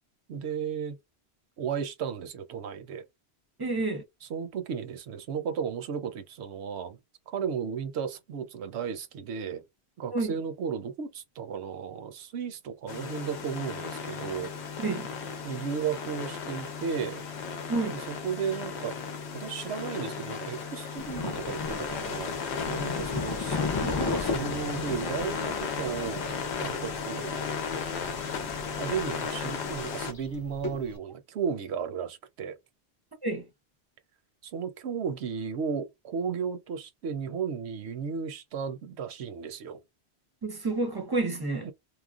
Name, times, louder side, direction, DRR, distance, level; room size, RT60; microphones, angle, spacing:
voice 1, 0.3-1.0 1.6-3.0 4.3-7.0 7.3-9.6 10.0-14.5 15.4-17.2 17.9-19.0 19.3-27.4 28.7-32.6 34.4-39.8 41.6-41.7, right 6 dB, 85° right, 0.9 m, -34 dB
voice 2, 3.6-4.0 10.1-10.3 14.8-15.1 17.7-18.0 33.2-33.5 40.4-41.7, right 3 dB, 25° right, 0.6 m, -29 dB
sound 1, 12.9-30.1, left 6 dB, 85° left, 0.9 m, -35 dB
Thunder, 21.0-31.0, left 3 dB, 35° left, 0.3 m, -36 dB
3.1 x 2.0 x 2.3 m
omnidirectional pair, 1.1 m